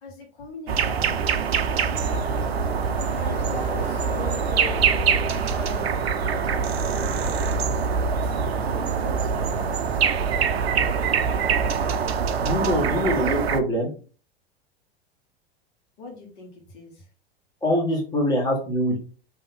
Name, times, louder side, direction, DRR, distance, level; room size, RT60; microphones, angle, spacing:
voice 1, 0.0-8.0 8.2-8.4 8.7-9.8 16.0-17.0, left 2 dB, 50° left, -1 dB, 1.5 m, -41 dB
sound 1, 0.7-13.6, right 6 dB, 75° right, 0.5 m, -24 dB
Car passing by / Traffic noise roadway noise / Engine, 1.9-10.1, left 3 dB, 85° left, 0.8 m, -38 dB
voice 2, 12.4-13.9 17.6-19.0, equal, 10° left, -3 dB, 1.5 m, -24 dB
3.6 x 2.9 x 3.6 m, 0.37 s
figure-of-eight pair, 85°, 31 cm